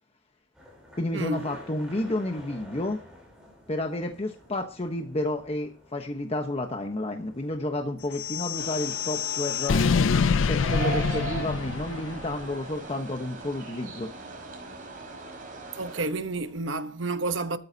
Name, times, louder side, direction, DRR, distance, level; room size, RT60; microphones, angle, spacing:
sound 1, 0.5-16.6, left 1 dB, 5° right, 7.4 m, -52 dB
voice 1, 1.0-3.0 3.7-9.8 10.5-14.1, left 1 dB, 30° left, 1.1 m, -31 dB
sound 2, 8.1-12.4, left 5 dB, 85° left, 0.5 m, -26 dB
sound 3, 8.6-16.0, right 4 dB, 45° right, 5.2 m, -39 dB
voice 2, 15.8-17.6, right 2 dB, 70° right, 1.0 m, -30 dB
13.5 x 13.5 x 2.8 m
head